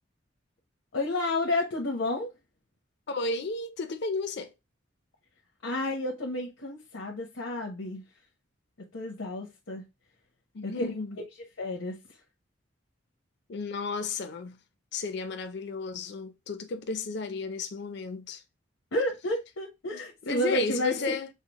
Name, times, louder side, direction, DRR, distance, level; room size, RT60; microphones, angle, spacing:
voice 1, 0.9-2.3 5.6-8.0 8.9-9.8 10.6-11.0 11.6-12.0 18.9-21.1, left 1 dB, 90° left, 0.9 m, -31 dB
voice 2, 3.1-4.5 10.5-11.2 13.5-14.6 14.9-18.4 19.9-21.3, left 4 dB, 55° left, 0.5 m, -33 dB
5.6 x 2.0 x 2.9 m
head